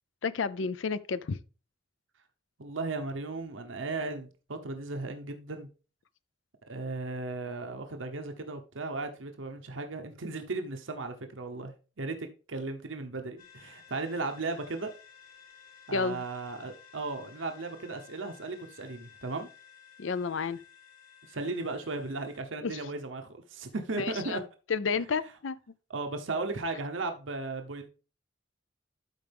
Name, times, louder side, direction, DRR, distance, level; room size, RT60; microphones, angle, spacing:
voice 1, 0.2-1.4 15.9-16.2 20.0-20.6 22.6-22.8 24.0-24.4 24.7-25.6, left 5 dB, 80° left, 0.5 m, -31 dB
voice 2, 2.6-5.7 6.7-14.9 15.9-19.5 21.3-24.4 25.0-25.1 25.9-27.9, right 3 dB, 85° right, 1.0 m, -36 dB
sound 1, 13.4-22.4, left 8 dB, 45° left, 1.9 m, -55 dB
12.5 x 4.6 x 3.5 m
head